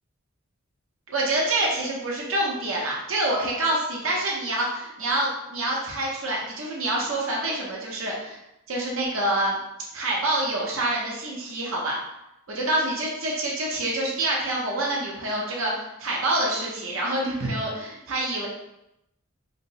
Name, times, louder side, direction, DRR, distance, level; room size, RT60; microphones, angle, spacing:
voice 1, 1.1-8.4 8.7-9.6 9.9-12.0 12.5-18.5, right 1 dB, 75° right, -3 dB, 0.7 m, -26 dB
4.1 x 2.0 x 2.6 m, 0.85 s
head